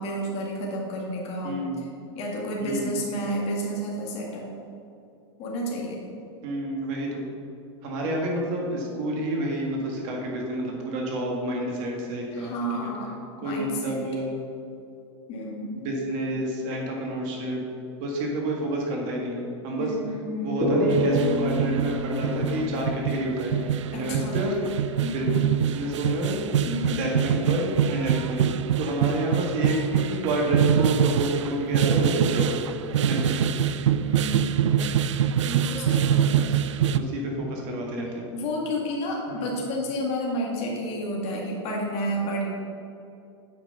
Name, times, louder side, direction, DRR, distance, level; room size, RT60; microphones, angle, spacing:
voice 1, 0.0-1.5 2.1-4.5 5.4-6.0 12.3-13.2 13.4-14.0 15.3-15.8 19.8-20.6 23.9-24.5 25.0-25.4 26.6-27.0 34.0-34.8 35.4-36.4 38.3-42.4, equal, 40° left, -2 dB, 2.0 m, -31 dB
voice 2, 1.4-1.8 2.6-3.0 6.4-7.2 7.8-12.5 12.8-12.9 13.4-14.4 15.7-17.6 18.0-19.9 20.4-24.6 25.1-25.3 25.7-26.4 27.0-28.5 28.8-32.5 33.0-33.4 36.3-36.6 36.9-38.3 39.3-39.5, right 1 dB, 50° right, -1 dB, 1.9 m, -29 dB
sound 1, 20.6-24.0, right 1 dB, 20° right, 1.4 m, -27 dB
sound 2, 20.9-37.0, right 9 dB, 85° right, 0.4 m, -25 dB
7.9 x 5.4 x 5.5 m, 2.6 s
hypercardioid pair, 115°, 15 cm